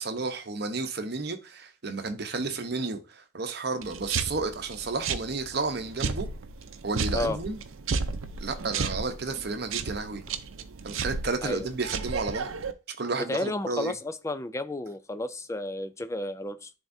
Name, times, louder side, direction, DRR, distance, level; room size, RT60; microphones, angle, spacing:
voice 1, 0.0-6.3 6.8-7.6 8.4-10.2 10.8-12.5 12.9-13.9, right 3 dB, 50° right, 0.8 m, -32 dB
sound 1, 3.8-12.7, right 5 dB, 80° right, 0.6 m, -33 dB
voice 2, 13.3-16.7, left 1 dB, 15° left, 0.3 m, -32 dB
10.5 x 3.5 x 2.7 m
head